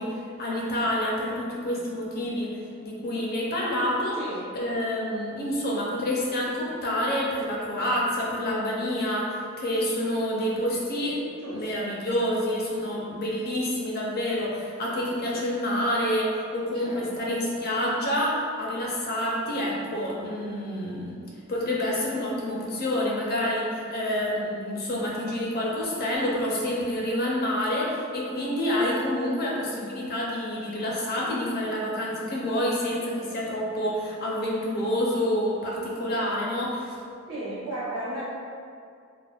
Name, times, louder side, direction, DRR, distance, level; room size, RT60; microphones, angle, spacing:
voice 1, 0.0-4.2 4.5-11.2 11.5-21.2 21.5-36.9, left 1 dB, 45° left, -4 dB, 0.5 m, -28 dB
voice 2, 4.2-4.5 11.4-12.0 16.7-17.3 37.3-38.2, right 1 dB, 70° right, -8 dB, 0.8 m, -35 dB
3.3 x 2.1 x 2.3 m, 2.3 s
head